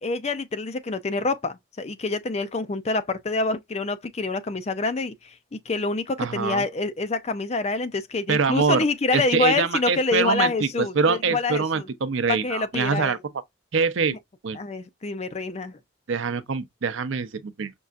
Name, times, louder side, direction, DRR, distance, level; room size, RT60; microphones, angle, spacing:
voice 1, 0.0-11.9 12.3-13.2 14.5-15.8, left 3 dB, 35° left, 0.4 m, -27 dB
voice 2, 6.2-6.6 8.3-8.8 9.1-10.5 10.9-13.2 13.7-14.2 14.4-14.6 16.1-17.7, right 5 dB, 75° right, 0.6 m, -24 dB
5.3 x 2.4 x 2.3 m
head